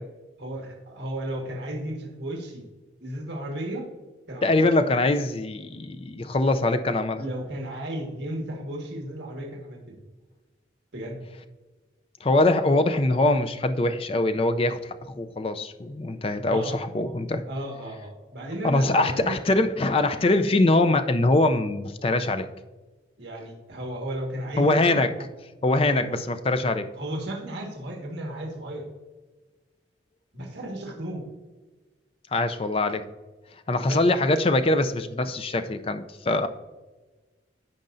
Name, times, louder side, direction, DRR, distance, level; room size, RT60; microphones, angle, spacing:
voice 1, 0.4-2.6 3.0-3.9 4.3-4.5 7.2-10.0 10.9-11.2 16.5-16.8 17.5-19.6 23.2-25.0 25.7-26.2 26.9-28.9 30.3-31.2 33.9-34.0, right 1 dB, 65° right, 0 dB, 1.6 m, -34 dB
voice 2, 4.4-7.2 12.2-17.4 18.6-22.5 24.6-25.1 25.6-26.9 32.3-33.1 33.7-36.5, left 2 dB, 30° left, 9 dB, 0.4 m, -23 dB
14.0 x 5.2 x 2.6 m, 1.2 s
head